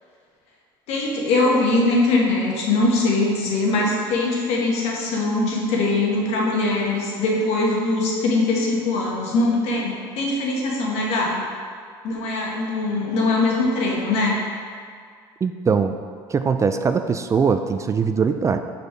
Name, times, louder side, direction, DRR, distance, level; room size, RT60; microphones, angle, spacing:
voice 1, 0.9-11.4 12.0-14.4, left 2 dB, 70° left, -2 dB, 1.4 m, -21 dB
voice 2, 15.4-16.0 16.3-18.6, right 5 dB, 25° right, 8 dB, 0.3 m, -21 dB
5.2 x 4.2 x 5.1 m, 2.1 s
supercardioid pair, 85°, 11 cm